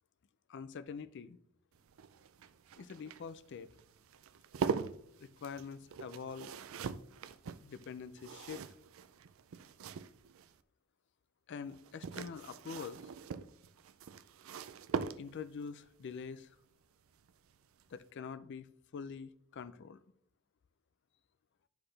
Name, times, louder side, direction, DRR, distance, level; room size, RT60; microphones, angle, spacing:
voice 1, 0.5-1.4 2.8-3.7 5.2-6.5 7.6-8.6 11.5-13.1 15.2-16.5 17.9-20.0, left 6 dB, 55° left, 14 dB, 0.4 m, -45 dB
sound 1, 1.7-10.6 11.7-15.6 17.2-17.5 17.8-17.9, right 5 dB, 65° right, 0.4 m, -42 dB
9.8 x 5.8 x 3.3 m, 0.69 s
head